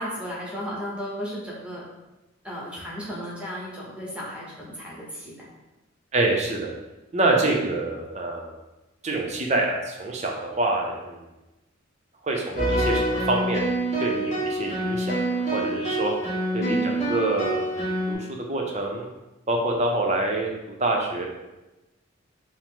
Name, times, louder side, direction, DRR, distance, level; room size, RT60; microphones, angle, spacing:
voice 1, 0.0-1.8 2.4-5.5 16.6-16.9, equal, 5° right, -5 dB, 0.8 m, -34 dB
voice 2, 6.1-6.7 7.1-8.5 9.0-11.2 12.2-13.6 14.0-16.1 16.5-16.8 17.1-19.1 19.5-21.3, right 2 dB, 35° right, 1 dB, 0.5 m, -26 dB
sound 1, 12.6-18.1, right 1 dB, 35° left, 1.2 m, -26 dB
4.8 x 2.0 x 3.7 m, 1.0 s
head